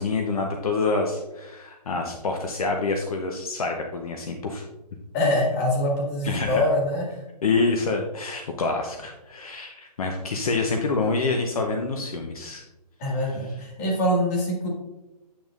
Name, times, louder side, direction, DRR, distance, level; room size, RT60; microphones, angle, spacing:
voice 1, 0.0-4.6 6.2-6.6 7.4-12.6, left 3 dB, 60° left, 3 dB, 0.8 m, -27 dB
voice 2, 5.1-7.2 13.0-14.7, left 1 dB, 25° left, -2 dB, 1.8 m, -24 dB
8.7 x 5.3 x 2.4 m, 0.99 s
hypercardioid pair, 160°, 21 cm